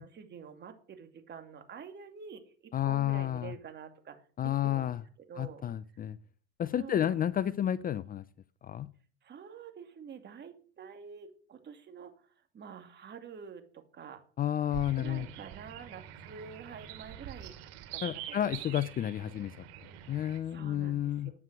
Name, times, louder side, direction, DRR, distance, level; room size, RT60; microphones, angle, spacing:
voice 1, 0.0-4.9 5.3-5.7 6.8-7.2 9.2-12.1 12.5-14.2 15.0-17.5 17.9-18.0 18.3-18.7 20.5-21.1, right 6 dB, 35° right, 7 dB, 2.5 m, -47 dB
voice 2, 2.7-3.6 4.4-5.0 5.4-6.2 6.6-8.2 8.6-8.9 14.4-15.3 18.0-19.6 20.1-21.3, left 11 dB, 30° left, 17 dB, 0.5 m, -31 dB
sound 1, 14.7-20.4, right 11 dB, 70° right, 2.7 m, -45 dB
11.0 x 9.2 x 6.1 m, 0.43 s
supercardioid pair, 105°, 31 cm